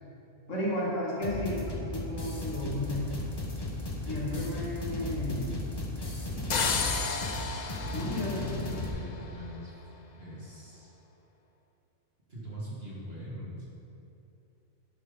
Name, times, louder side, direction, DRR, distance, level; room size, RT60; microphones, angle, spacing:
voice 1, 0.5-3.1 4.1-5.6 7.9-8.6, left 1 dB, 55° left, -5 dB, 2.2 m, -33 dB
sound 1, 1.2-8.9, left 1 dB, 20° left, 1.0 m, -35 dB
sound 2, 6.5-9.4, left 5 dB, 75° left, 0.4 m, -32 dB
voice 2, 8.1-9.7 10.1-11.0 12.3-13.7, equal, 40° right, -6 dB, 2.2 m, -42 dB
11.5 x 7.5 x 3.9 m, 2.8 s
omnidirectional pair, 1.5 m